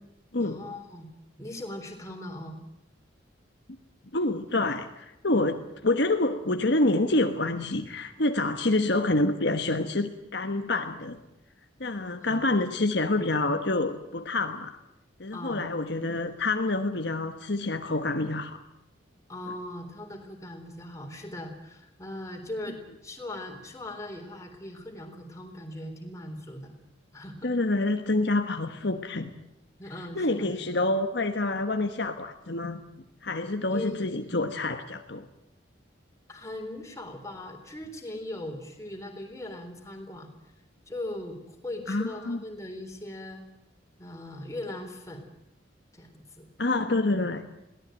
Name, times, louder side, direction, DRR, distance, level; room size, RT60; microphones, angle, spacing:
voice 1, 0.4-1.1 1.4-2.6 12.2-12.4 15.3-15.7 19.3-26.7 27.1-27.5 29.8-30.5 33.7-34.0 36.3-40.3 40.9-43.4 44.0-45.3 45.9-46.5, left 1 dB, 15° left, 3 dB, 3.8 m, -39 dB
voice 2, 4.1-11.2 11.8-14.8 15.2-18.6 27.4-29.3 30.1-32.8 33.2-35.3 41.9-42.4 46.6-47.4, left 2 dB, 60° left, 6 dB, 1.3 m, -27 dB
22.0 x 17.5 x 9.0 m, 0.90 s
head